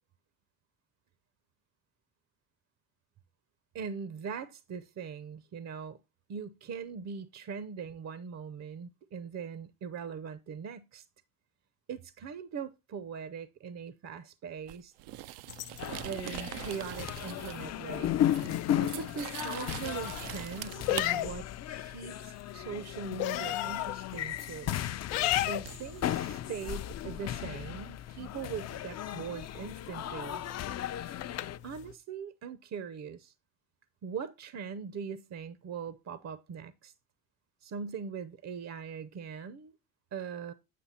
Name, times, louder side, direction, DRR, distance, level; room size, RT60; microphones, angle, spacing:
voice 1, 3.7-6.0 6.3-11.1 11.9-14.9 16.0-18.4 18.7-24.8 25.5-30.4 31.6-33.3 34.0-36.9 37.6-39.7 40.1-40.5, right 6 dB, 40° right, 0.7 m, -41 dB
sound 1, 14.7-17.7 18.0-21.1 24.3-24.4 25.6-26.4, right 16 dB, 75° right, 0.5 m, -43 dB
sound 2, 15.5-31.9, left 15 dB, 85° left, 0.7 m, -39 dB
sound 3, 15.8-31.6, left 11 dB, 40° left, 0.5 m, -36 dB
8.4 x 5.5 x 4.2 m
supercardioid pair, 80°, 41 cm